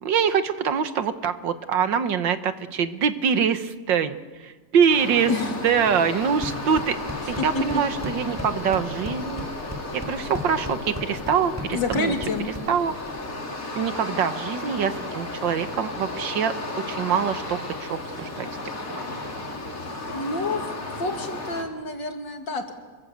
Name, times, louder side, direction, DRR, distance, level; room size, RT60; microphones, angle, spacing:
voice 1, 0.0-5.3 5.6-7.0 7.3-9.5 9.9-12.1 12.7-12.9 13.8-16.5 16.9-18.5, right 7 dB, 85° right, 10 dB, 1.9 m, -24 dB
sound 1, 4.9-21.6, left 2 dB, 50° left, 3.5 m, -34 dB
sound 2, 6.2-13.2, left 1 dB, 10° right, 1.8 m, -37 dB
voice 2, 11.7-12.5 20.1-20.6 21.0-22.7, left 3 dB, 80° left, 4 dB, 3.3 m, -28 dB
26.5 x 23.5 x 8.0 m, 1.4 s
omnidirectional pair, 1.9 m